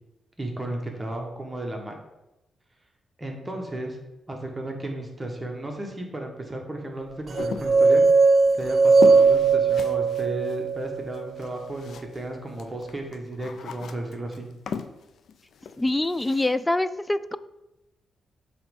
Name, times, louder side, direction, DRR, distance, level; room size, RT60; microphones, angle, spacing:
voice 1, 0.4-2.0 3.2-4.0 4.3-8.2 8.6-14.5, right 1 dB, 20° right, 1 dB, 1.4 m, -34 dB
sound 1, 7.4-12.3 12.5-16.6, left 6 dB, 75° left, 0.5 m, -37 dB
sound 2, 7.4-11.5, right 4 dB, 55° right, 0.5 m, -19 dB
voice 2, 15.8-17.4, left 2 dB, 15° left, 14 dB, 0.3 m, -25 dB
7.1 x 3.2 x 5.3 m, 0.95 s
cardioid pair, 75°, 0 cm